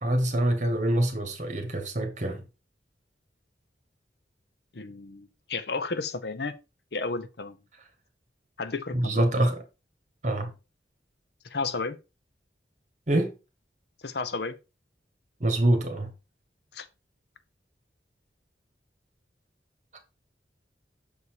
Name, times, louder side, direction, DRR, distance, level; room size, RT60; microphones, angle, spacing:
voice 1, 0.0-2.4 8.9-9.6 10.2-10.5 13.1-13.3 15.4-16.1, right 1 dB, 45° right, 1.6 m, -25 dB
voice 2, 4.7-6.5 6.9-7.6 8.6-9.2 11.4-12.0 14.0-14.5 16.7-16.9, left 4 dB, 65° left, 0.8 m, -32 dB
6.7 x 4.2 x 4.8 m
head